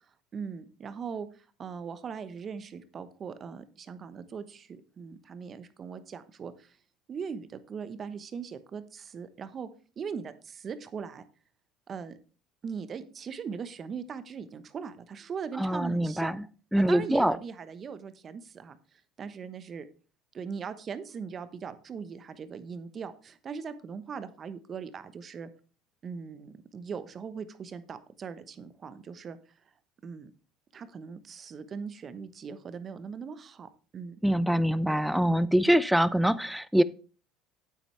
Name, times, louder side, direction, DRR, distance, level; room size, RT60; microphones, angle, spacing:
voice 1, 0.3-6.8 7.1-9.7 10.0-11.2 11.9-12.2 12.6-16.3 16.7-18.8 19.2-19.9 20.3-25.5 26.0-29.4 30.0-30.3 30.7-34.2, right 6 dB, 40° right, 12 dB, 1.1 m, -40 dB
voice 2, 15.6-16.4 16.7-17.4 34.2-36.8, equal, ahead, 17 dB, 0.6 m, -24 dB
8.9 x 8.4 x 3.4 m, 0.37 s
hypercardioid pair, 80°, 0 cm